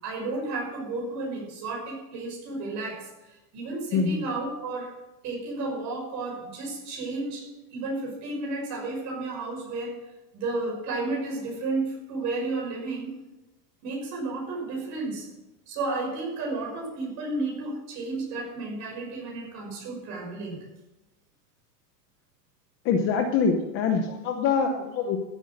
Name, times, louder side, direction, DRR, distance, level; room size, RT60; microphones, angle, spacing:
voice 1, 0.0-4.9 5.2-7.5 7.7-10.0 10.3-13.2 13.8-15.3 15.7-20.6, right 3 dB, 35° right, -2 dB, 6.1 m, -32 dB
voice 2, 3.9-4.2 22.8-25.2, left 5 dB, 25° left, 5 dB, 0.8 m, -24 dB
15.0 x 8.4 x 6.4 m, 0.99 s
supercardioid pair, 170°, 49 cm